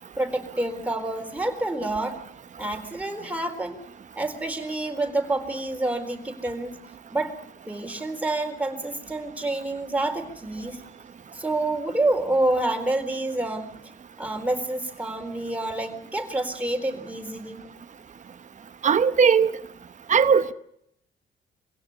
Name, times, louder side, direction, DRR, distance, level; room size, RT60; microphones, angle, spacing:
voice 1, 0.2-2.2 2.6-3.8 4.2-6.8 7.1-7.3 7.7-10.8 11.3-13.7 14.2-17.6, right 2 dB, 5° right, 4.2 m, -28 dB
voice 2, 18.8-19.5 20.1-20.5, right 6 dB, 40° right, 1.0 m, -18 dB
25.0 x 17.0 x 8.6 m
cardioid pair, 90°, 20 cm